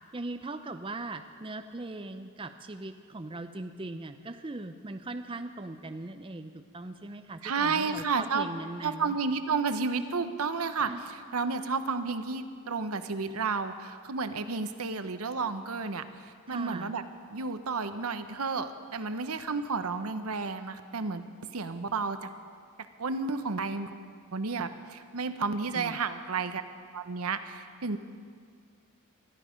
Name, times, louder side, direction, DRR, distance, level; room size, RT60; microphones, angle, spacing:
voice 1, 0.1-9.2 10.9-11.1 16.5-17.0 25.7-26.0, right 2 dB, 25° right, 7 dB, 0.5 m, -40 dB
voice 2, 7.4-8.5 8.8-10.9 11.3-17.0 17.3-21.2 21.5-22.3 23.0-24.0 24.3-26.6 26.9-28.0, right 4 dB, 85° right, 10 dB, 0.9 m, -31 dB
21.0 x 13.0 x 5.2 m, 2.1 s
head